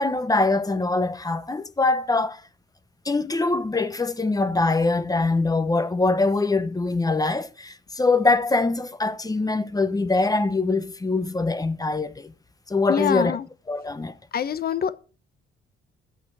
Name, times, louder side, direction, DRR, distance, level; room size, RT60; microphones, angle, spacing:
voice 1, 0.0-2.4 3.0-12.3 12.7-13.4 13.7-14.1, left 3 dB, 20° left, 1.0 m, -23 dB
voice 2, 12.9-13.4 14.3-14.9, left 8 dB, 50° left, 1.0 m, -25 dB
12.5 x 8.2 x 4.8 m
cardioid pair, 90°, 20 cm